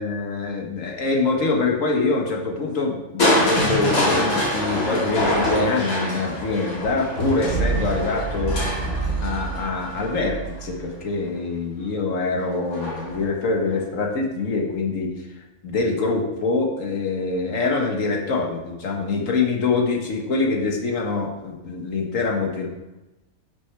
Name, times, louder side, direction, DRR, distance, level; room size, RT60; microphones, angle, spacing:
voice 1, 0.0-8.6 9.2-15.1 15.6-22.7, left 3 dB, 70° left, 1 dB, 1.7 m, -24 dB
Crushing, 3.2-11.1 12.7-13.2 13.7-13.8, equal, 85° left, 2.6 m, -24 dB
10.5 x 6.5 x 3.3 m, 1.0 s
omnidirectional pair, 1.4 m